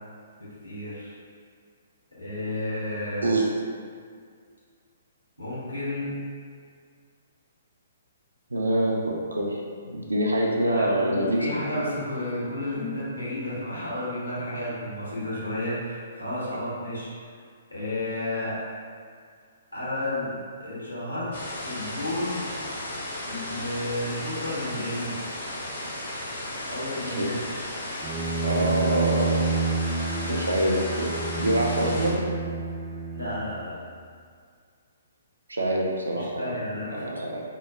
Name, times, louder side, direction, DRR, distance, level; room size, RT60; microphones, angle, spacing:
voice 1, 0.4-1.1 2.2-3.4 5.4-6.2 10.5-17.2 17.7-18.6 19.7-21.4 21.6-22.5 23.2-25.2 26.6-27.4 33.1-33.8 36.1-37.1, left 1 dB, 85° left, -9 dB, 1.1 m, -32 dB
voice 2, 8.5-11.5 16.5-16.6 27.0-27.3 28.4-29.4 30.2-32.2 35.5-36.6 36.9-37.4, right 1 dB, 75° right, -1 dB, 0.4 m, -25 dB
sound 1, 21.3-32.1, left 1 dB, 55° left, 0.8 m, -35 dB
Bowed string instrument, 28.0-33.8, right 4 dB, 10° right, 0.4 m, -29 dB
3.7 x 2.0 x 2.3 m, 2.1 s
figure-of-eight pair, 125°, 0 cm